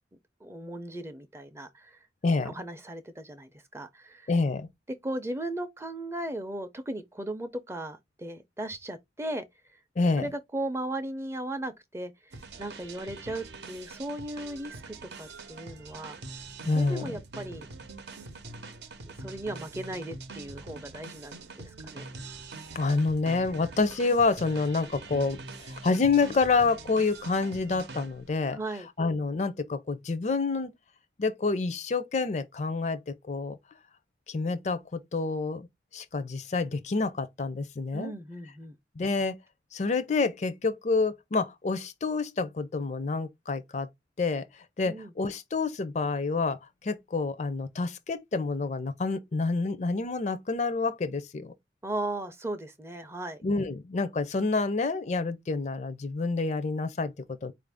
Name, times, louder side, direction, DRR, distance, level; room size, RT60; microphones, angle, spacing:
voice 1, 0.4-2.0 2.4-4.3 4.9-9.4 10.2-12.3 12.6-16.2 16.7-17.7 19.2-22.0 28.5-28.9 37.9-38.7 44.8-45.1 51.8-53.4, right 1 dB, 15° right, 0.5 m, -37 dB
voice 2, 2.2-2.5 4.3-4.7 10.0-10.3 16.7-17.1 22.7-28.6 29.0-30.7 31.2-33.6 34.3-35.7 35.9-38.1 39.0-39.4 39.7-43.9 44.2-51.5 53.4-57.5, left 3 dB, 40° left, 0.4 m, -28 dB
sound 1, 12.3-28.4, right 3 dB, 75° right, 0.7 m, -44 dB
4.3 x 2.5 x 3.4 m
head